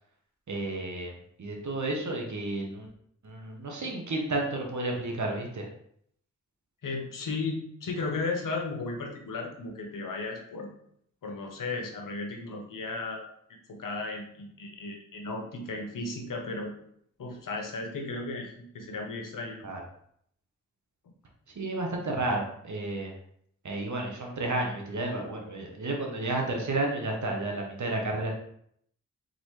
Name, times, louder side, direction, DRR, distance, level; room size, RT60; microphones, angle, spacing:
voice 1, 0.5-1.1 1.4-2.9 3.2-5.7 19.6-19.8 21.5-23.1 23.6-28.3, right 2 dB, 65° right, 1 dB, 1.2 m, -31 dB
voice 2, 6.8-10.7 11.2-13.2 13.7-16.7 17.2-19.7, left 3 dB, 90° left, 2 dB, 0.9 m, -35 dB
3.9 x 3.9 x 3.3 m, 0.67 s
cardioid pair, 45°, 31 cm